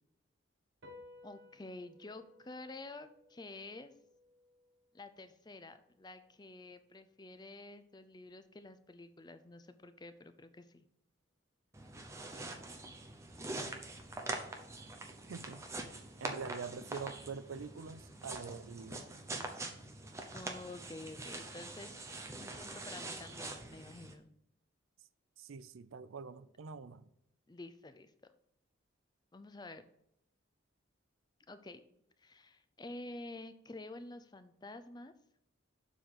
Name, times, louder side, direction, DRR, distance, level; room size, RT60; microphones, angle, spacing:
sound 1, 0.8-7.5, left 2 dB, 60° right, 0.9 m, -61 dB
voice 1, 1.2-3.9 4.9-10.8 20.3-22.0 22.3-24.3 27.5-28.1 29.3-29.8 31.5-31.8 32.2-35.1, left 2 dB, 20° left, 0.5 m, -49 dB
sound 2, 11.7-24.1, right 2 dB, 15° right, 0.7 m, -44 dB
voice 2, 15.3-15.6 16.2-19.1 25.4-27.0, right 5 dB, 90° right, 0.5 m, -45 dB
7.1 x 3.9 x 6.4 m
head